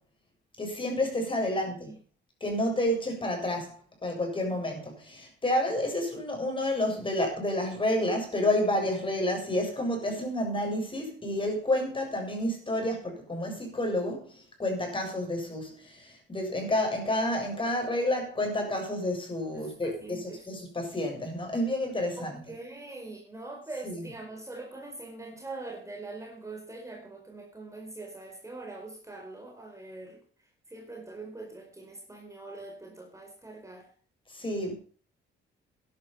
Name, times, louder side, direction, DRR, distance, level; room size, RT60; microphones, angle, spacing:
voice 1, 0.6-1.9 2.4-22.4 23.8-23.9 34.3-34.7, left 1 dB, 25° left, 7.6 m, -30 dB
voice 2, 1.4-1.9 19.5-20.4 22.2-30.2 30.7-33.9, right 2 dB, 15° right, 4.7 m, -43 dB
12.5 x 11.5 x 5.8 m
cardioid pair, 90°, 20 cm